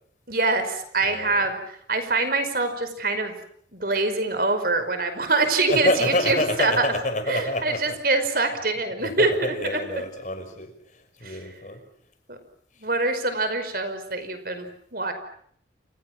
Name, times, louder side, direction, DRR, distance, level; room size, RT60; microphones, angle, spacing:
voice 1, 0.3-3.3 3.7-6.8 7.3-9.3 9.6-9.8 11.2-11.4 12.3-12.4 12.8-14.7 14.9-15.1, right 3 dB, 50° right, 9 dB, 5.3 m, -24 dB
voice 2, 1.0-1.4 5.7-8.0 9.0-11.8, left 1 dB, 40° left, 7 dB, 5.7 m, -27 dB
29.5 x 29.0 x 6.2 m, 0.64 s
head